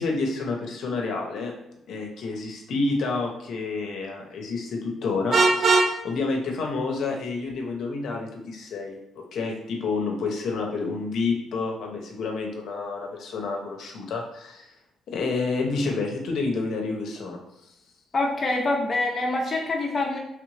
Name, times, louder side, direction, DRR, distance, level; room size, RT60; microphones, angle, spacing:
voice 1, 0.0-1.5 1.9-9.0 9.3-14.7 15.1-17.4, left 3 dB, 70° left, 1 dB, 0.7 m, -29 dB
Vehicle horn car horn honking, 5.3-5.9, right 3 dB, 45° right, 0.4 m, -19 dB
voice 2, 18.1-20.2, left 2 dB, 35° left, 0 dB, 0.6 m, -25 dB
3.2 x 2.5 x 3.1 m, 0.85 s
cardioid pair, 90°, 0 cm